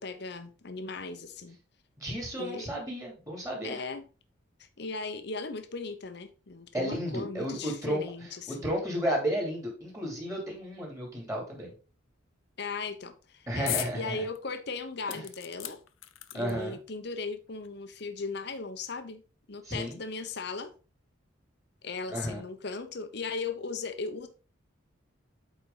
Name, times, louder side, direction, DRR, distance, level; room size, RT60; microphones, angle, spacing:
voice 1, 0.0-1.6 2.4-2.7 3.6-4.0 4.8-8.7 12.6-15.8 16.3-19.2 19.5-20.7 21.8-24.3, left 4 dB, 55° left, 0.9 m, -37 dB
voice 2, 2.0-3.8 6.7-8.0 8.5-11.7 13.5-14.3 15.1-15.2 16.3-16.8 19.6-20.0 22.1-22.4, equal, 15° right, 2.8 m, -33 dB
sound 1, 13.7-14.0 14.4-14.5 15.1-16.7 17.6-17.7 18.0-18.1, left 14 dB, 85° left, 0.6 m, -37 dB
8.3 x 4.6 x 3.9 m
head